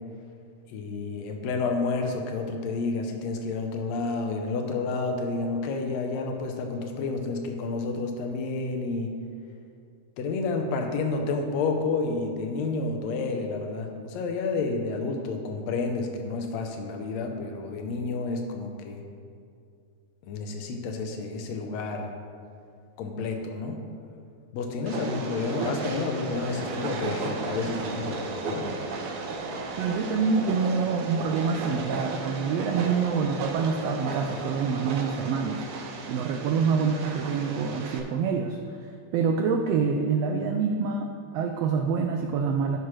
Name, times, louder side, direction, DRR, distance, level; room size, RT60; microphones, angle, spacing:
voice 1, 0.7-9.1 10.2-19.0 20.2-22.1 23.0-23.8 24.5-28.7, left 3 dB, 70° left, 4 dB, 1.9 m, -30 dB
Train, 24.9-38.0, right 3 dB, 70° right, 1.4 m, -34 dB
voice 2, 29.8-35.6 36.1-42.8, right 5 dB, 85° right, 3 dB, 1.4 m, -26 dB
14.0 x 6.1 x 3.2 m, 2.3 s
omnidirectional pair, 3.4 m